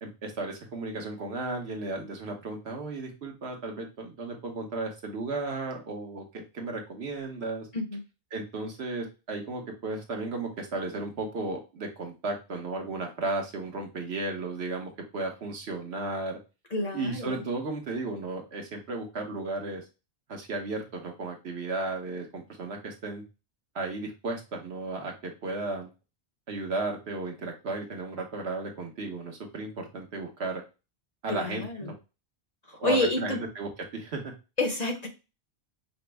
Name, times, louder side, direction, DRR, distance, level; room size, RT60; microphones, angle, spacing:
voice 1, 0.0-7.7 8.3-16.4 16.9-19.8 20.3-23.2 23.7-25.9 26.5-30.6 31.2-31.9 32.8-34.3, right 3 dB, 70° right, 2 dB, 1.2 m, -34 dB
voice 2, 16.7-17.4 31.3-31.9 32.7-33.4 34.6-35.1, left 2 dB, 40° left, 1 dB, 0.8 m, -29 dB
5.1 x 2.0 x 3.3 m, 0.29 s
omnidirectional pair, 1.1 m